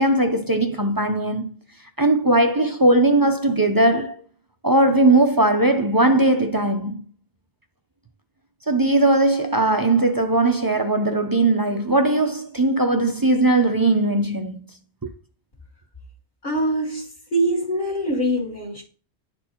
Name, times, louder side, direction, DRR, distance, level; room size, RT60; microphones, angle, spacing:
voice 1, 0.0-1.5 2.0-4.2 4.6-7.0 8.7-14.6 15.0-15.1, right 2 dB, 30° right, 0.4 m, -19 dB
voice 2, 16.4-18.8, right 1 dB, 45° left, 1.6 m, -24 dB
11.0 x 4.4 x 2.9 m
omnidirectional pair, 1.1 m